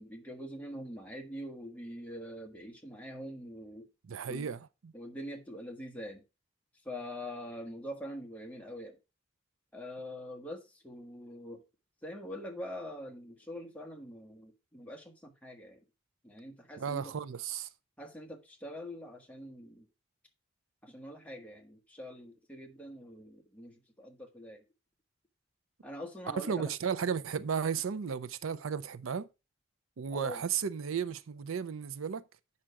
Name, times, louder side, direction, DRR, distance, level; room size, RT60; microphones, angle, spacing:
voice 1, 0.0-3.9 4.3-4.5 4.9-6.2 6.8-9.0 9.7-11.6 12.0-15.8 16.2-17.1 18.0-19.9 20.8-24.6 25.8-26.7 30.1-30.4, equal, 5° left, 1.3 m, -44 dB
voice 2, 4.0-4.9 16.8-17.7 26.3-29.3 30.0-32.3, right 6 dB, 85° right, 0.5 m, -34 dB
7.5 x 5.6 x 4.7 m
head